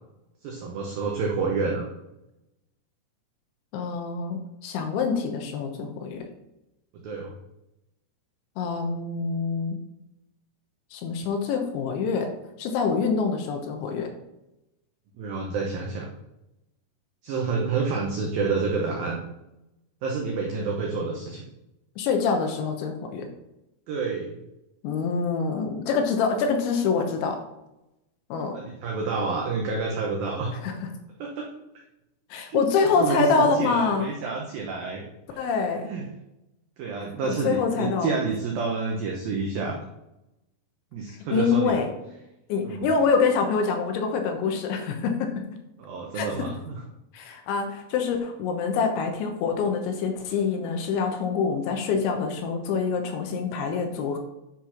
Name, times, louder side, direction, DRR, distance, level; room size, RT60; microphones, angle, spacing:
voice 1, 0.4-1.9 6.9-7.3 15.2-16.1 17.2-19.2 20.0-21.5 23.9-24.4 28.5-30.5 31.2-31.5 32.5-32.6 33.0-35.0 35.3-35.5 35.9-36.0 36.8-39.8 40.9-41.7 42.6-42.9 45.8-46.8, right 4 dB, 90° right, 0 dB, 2.0 m, -29 dB
voice 2, 3.7-6.3 8.6-9.8 10.9-12.3 12.6-14.1 22.0-23.3 24.8-27.4 28.3-28.6 30.6-30.7 32.3-34.1 35.4-35.9 37.2-38.1 41.3-41.9 42.5-45.4 46.1-46.3 47.1-54.2, left 5 dB, 75° left, 4 dB, 3.2 m, -25 dB
10.5 x 4.4 x 5.8 m, 0.92 s
omnidirectional pair, 5.7 m